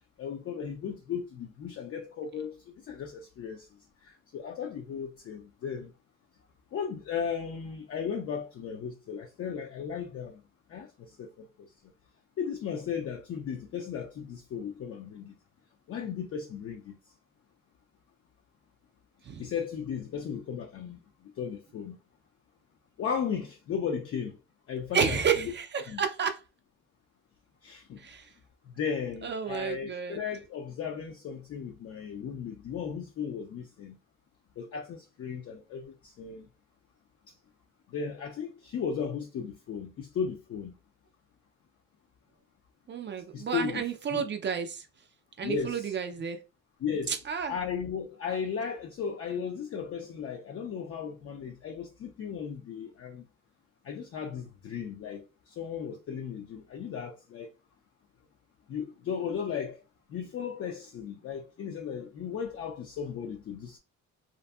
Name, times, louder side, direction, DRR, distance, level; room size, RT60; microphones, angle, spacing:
voice 1, 0.2-2.6 2.8-3.7 4.0-5.9 6.7-10.4 10.7-10.9 11.2-11.5 12.4-15.3 15.9-17.0 19.4-21.0 21.4-22.0 23.0-24.4 24.7-25.5 25.9-26.0 27.6-28.0 28.8-34.0 34.6-36.5 37.9-40.7 43.3-43.8 44.1-44.2 45.4-45.9 46.8-47.1 47.5-53.2 53.8-57.5 58.7-59.8 60.1-63.8, left 7 dB, 50° left, 0.4 m, -35 dB
voice 2, 24.9-26.4 28.0-28.3 29.2-30.2 42.9-44.9 45.4-46.4 47.1-47.6, right 7 dB, 40° right, 0.4 m, -31 dB
2.6 x 2.5 x 2.3 m
cardioid pair, 90°, 30 cm